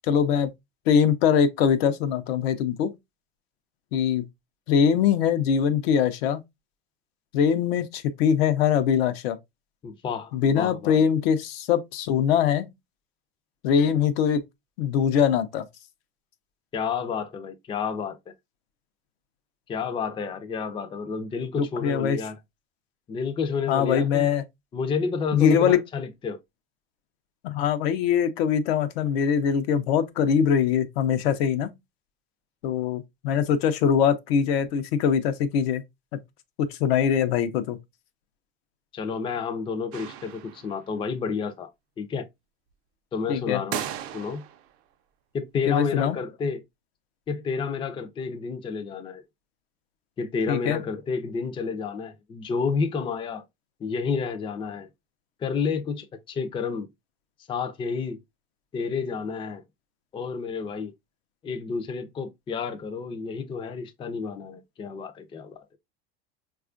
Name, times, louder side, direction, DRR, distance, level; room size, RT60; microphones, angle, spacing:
voice 1, 0.1-0.5 0.9-2.9 3.9-4.2 4.7-6.4 7.3-9.4 10.3-12.7 13.6-14.4 14.8-15.7 21.6-22.2 23.7-24.4 25.3-25.8 27.4-31.7 32.6-35.8 36.6-37.8 43.3-43.6 45.7-46.2 50.5-50.8, left 7 dB, 80° left, 0.6 m, -22 dB
voice 2, 9.8-11.0 16.7-18.2 19.7-22.4 23.1-24.3 24.7-26.4 38.9-41.7 42.0-42.2 43.1-43.8 44.1-44.4 45.3-46.6 47.3-49.2 50.2-53.4 53.8-54.9 55.4-56.9 57.5-58.2 58.7-59.6 60.1-60.9 61.4-65.6, left 5 dB, 15° left, 0.4 m, -30 dB
sound 1, 39.9-40.9 43.7-44.7, right 11 dB, 45° right, 0.5 m, -36 dB
4.2 x 2.4 x 2.4 m
supercardioid pair, 110°, 30 cm